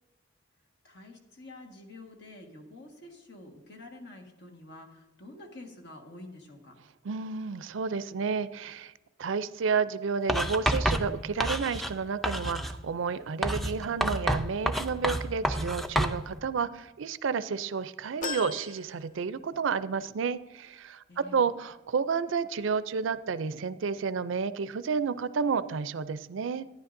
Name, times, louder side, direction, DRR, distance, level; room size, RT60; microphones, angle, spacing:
voice 1, 0.8-6.8 21.1-21.5, left 2 dB, 60° left, 2 dB, 1.5 m, -48 dB
voice 2, 7.0-8.9 9.2-26.6, right 5 dB, 75° right, 15 dB, 0.4 m, -31 dB
Writing, 10.3-12.0 12.2-12.8 13.4-16.2, equal, ahead, 0.4 m, -28 dB
sound 1, 18.2-19.9 20.3-20.4 21.6-21.7, left 5 dB, 40° left, 0.6 m, -40 dB
12.0 x 10.0 x 2.6 m, 1.1 s
head